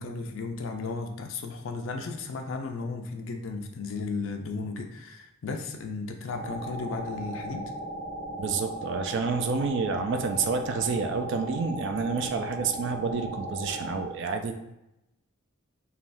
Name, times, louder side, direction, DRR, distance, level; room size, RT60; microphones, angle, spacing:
voice 1, 0.0-7.7, left 4 dB, 65° left, 4 dB, 0.4 m, -35 dB
sound 1, 6.3-14.0, right 1 dB, 15° left, 0.9 m, -37 dB
voice 2, 8.4-14.7, right 5 dB, 55° right, 6 dB, 0.3 m, -29 dB
3.4 x 2.2 x 2.5 m, 0.90 s
head